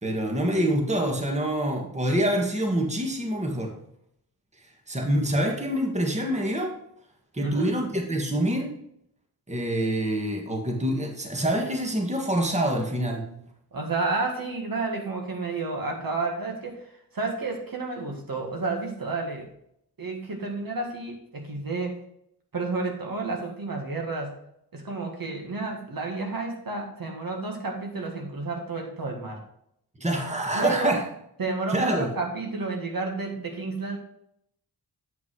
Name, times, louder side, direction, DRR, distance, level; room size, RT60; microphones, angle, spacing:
voice 1, 0.0-3.8 4.9-6.8 7.3-8.7 9.5-13.3 30.0-31.0 31.7-32.1, right 1 dB, 15° right, 1 dB, 1.5 m, -26 dB
voice 2, 7.4-7.7 13.7-19.5 20.0-22.0 22.5-24.4 24.7-29.4 30.5-31.0 31.4-34.0, right 3 dB, 55° right, 1 dB, 1.7 m, -31 dB
8.3 x 5.3 x 4.7 m, 0.74 s
wide cardioid pair, 75°, 40 cm